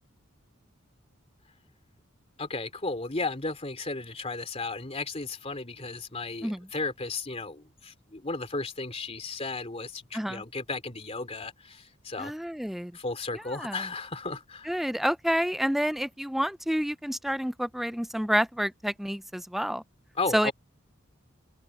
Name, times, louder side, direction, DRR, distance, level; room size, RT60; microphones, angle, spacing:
voice 1, 2.4-12.3 12.9-14.7 20.1-20.5, left 3 dB, 30° left, 2.9 m, -34 dB
voice 2, 12.2-12.9 13.5-13.9 14.7-19.8 20.3-20.5, equal, ahead, 0.4 m, -29 dB
head